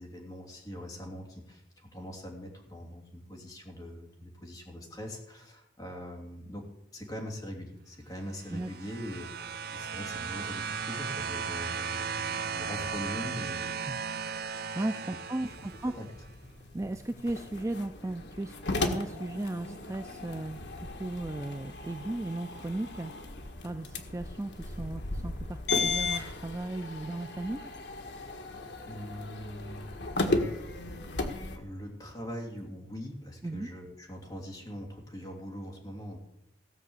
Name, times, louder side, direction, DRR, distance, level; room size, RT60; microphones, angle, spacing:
voice 1, 0.0-14.1 15.6-15.7 15.9-16.1 28.8-29.9 31.5-36.2, equal, 20° left, -1 dB, 3.1 m, -42 dB
sound 1, 8.4-16.1 17.2-17.3, right 6 dB, 55° right, 0.7 m, -36 dB
voice 2, 14.7-15.9 16.7-23.1 23.6-27.7 33.4-33.7, right 2 dB, 15° right, 8 dB, 0.4 m, -36 dB
sound 2, 15.4-31.6, left 3 dB, 65° left, 1.6 m, -36 dB
17.0 x 6.0 x 8.2 m, 0.83 s
head